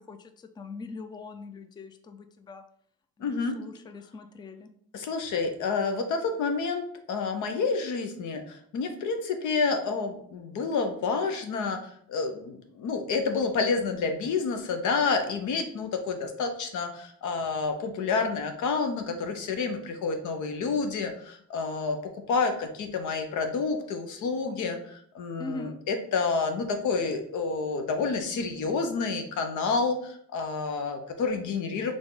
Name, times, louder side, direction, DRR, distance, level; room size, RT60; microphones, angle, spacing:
voice 1, 0.0-2.6 3.2-4.7 25.4-25.8, left 3 dB, 15° left, 8 dB, 0.4 m, -42 dB
voice 2, 3.2-3.6 4.9-31.9, left 4 dB, 80° left, 6 dB, 0.8 m, -29 dB
3.7 x 3.4 x 3.9 m, 0.63 s
cardioid pair, 90°, 30 cm